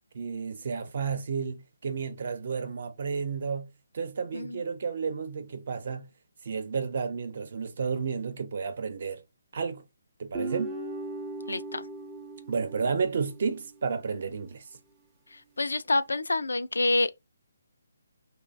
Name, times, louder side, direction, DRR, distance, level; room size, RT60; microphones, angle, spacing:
voice 1, 0.1-3.7 3.9-6.1 6.4-9.2 9.5-9.8 10.2-10.8 12.5-14.6, right 5 dB, 50° right, 0.6 m, -32 dB
Guitar, 10.3-13.6, right 2 dB, 10° right, 0.5 m, -38 dB
voice 2, 11.5-11.9 15.3-17.2, left 2 dB, 85° left, 0.3 m, -28 dB
3.1 x 2.0 x 2.4 m
hypercardioid pair, 160°, 0 cm